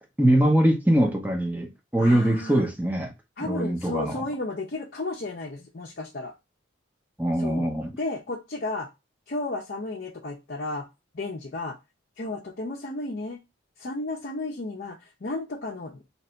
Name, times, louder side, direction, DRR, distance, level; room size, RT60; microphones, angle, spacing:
voice 1, 0.2-3.1 3.4-4.1 7.2-7.9, right 1 dB, 10° right, 0.6 m, -22 dB
voice 2, 2.0-2.7 3.4-6.3 7.4-7.7 8.0-8.9 9.3-10.9 11.1-11.8 12.2-13.4 13.8-16.0, left 2 dB, 50° left, 0.6 m, -33 dB
2.9 x 2.6 x 4.3 m
head